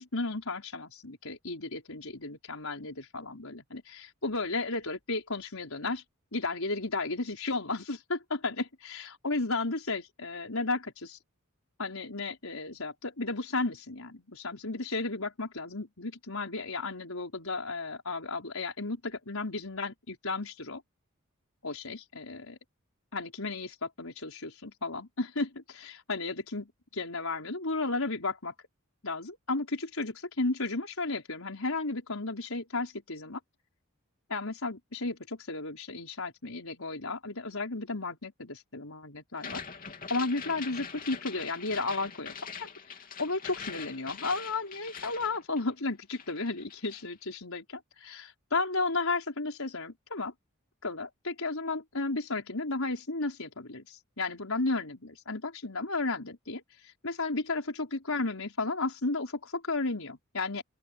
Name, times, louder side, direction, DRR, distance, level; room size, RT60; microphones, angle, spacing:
voice 1, 0.0-6.0 6.3-11.2 11.8-20.8 21.6-22.6 23.1-26.7 27.0-28.5 29.0-33.4 34.3-39.6 40.1-42.7 43.2-48.2 48.5-50.3 50.8-56.6 57.0-60.6, left 3 dB, 75° left, 4.8 m, -33 dB
sound 1, 39.3-45.9 46.2-47.1, left 6 dB, 40° left, 3.1 m, -43 dB
open air
head